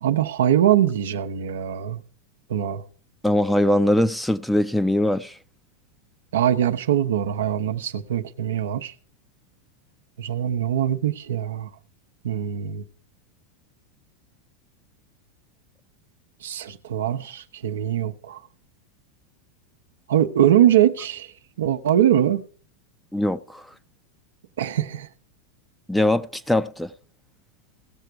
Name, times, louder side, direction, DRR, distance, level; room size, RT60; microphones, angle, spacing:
voice 1, 0.0-2.0 2.5-2.8 6.3-8.9 10.2-11.7 12.2-12.8 16.4-18.4 20.1-21.3 21.6-22.4 24.6-25.1, right 10 dB, 80° right, 0.7 m, -22 dB
voice 2, 3.2-5.4 23.1-23.7 25.9-26.9, left 1 dB, 5° left, 0.5 m, -21 dB
17.0 x 6.7 x 4.6 m
hypercardioid pair, 100°, 0 cm